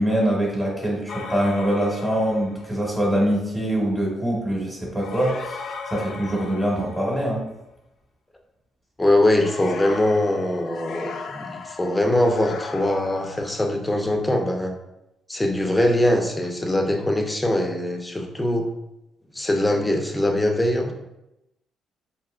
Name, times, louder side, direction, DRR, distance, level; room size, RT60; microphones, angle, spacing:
voice 1, 0.0-7.4, right 1 dB, 5° right, -5 dB, 1.2 m, -24 dB
sound 1, 1.1-2.8 4.9-7.5 9.4-13.8, left 5 dB, 65° left, 0.4 m, -37 dB
voice 2, 9.0-14.7 15.3-18.7 19.3-20.9, left 1 dB, 10° left, 3 dB, 0.6 m, -22 dB
4.6 x 2.8 x 2.4 m, 0.89 s
cardioid pair, 90°, 0 cm